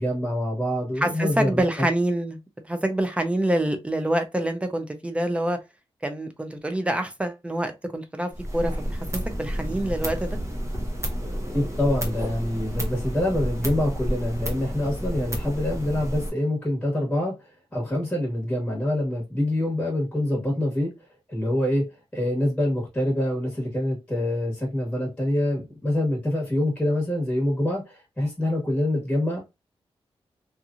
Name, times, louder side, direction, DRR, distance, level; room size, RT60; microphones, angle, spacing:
voice 1, 0.0-1.9 11.5-17.4 17.7-20.9 21.3-29.4, left 1 dB, 10° left, 1.3 m, -25 dB
voice 2, 1.0-2.4 2.7-5.6 6.0-10.4, right 1 dB, 10° right, 0.5 m, -26 dB
sound 1, 8.3-16.3, equal, 30° right, 0.9 m, -30 dB
2.9 x 2.5 x 2.4 m
wide cardioid pair, 150°, 10 cm